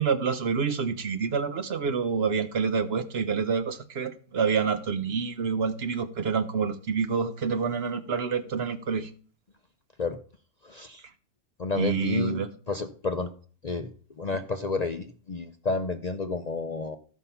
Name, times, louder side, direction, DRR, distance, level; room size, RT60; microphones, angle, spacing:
voice 1, 0.0-9.1 11.7-12.5, right 6 dB, 55° right, 0.9 m, -27 dB
voice 2, 10.6-11.0 11.6-13.3 13.6-13.9 14.2-17.0, left 3 dB, 40° left, 0.6 m, -30 dB
13.5 x 5.6 x 5.6 m
omnidirectional pair, 1.4 m